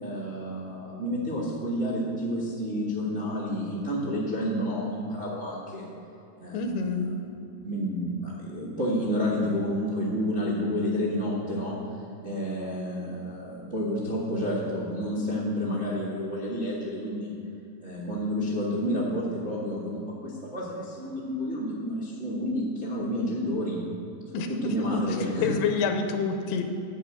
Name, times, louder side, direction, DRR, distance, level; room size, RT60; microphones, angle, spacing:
voice 1, 0.0-5.9 6.4-6.9 7.6-11.8 12.2-17.3 17.8-23.8 24.5-25.5, equal, 55° right, -8 dB, 0.7 m, -30 dB
voice 2, 6.5-7.1 24.3-25.0 25.4-26.6, left 5 dB, 80° left, 5 dB, 2.8 m, -27 dB
10.5 x 5.7 x 8.6 m, 2.7 s
omnidirectional pair, 4.6 m